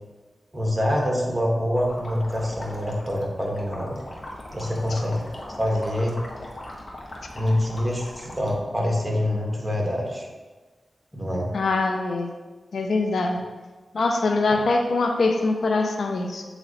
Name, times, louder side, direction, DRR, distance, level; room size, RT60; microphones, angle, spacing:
voice 1, 0.5-3.9 4.5-5.2 5.6-6.2 7.3-10.3 11.1-11.5, left 1 dB, 15° right, -1 dB, 1.5 m, -25 dB
sound 1, 1.8-8.5, left 1 dB, 55° left, 1.1 m, -39 dB
voice 2, 11.5-12.3 12.7-13.4 13.9-16.4, left 3 dB, 75° left, 4 dB, 0.5 m, -23 dB
7.7 x 3.0 x 4.0 m, 1.3 s
cardioid pair, 55°, 0 cm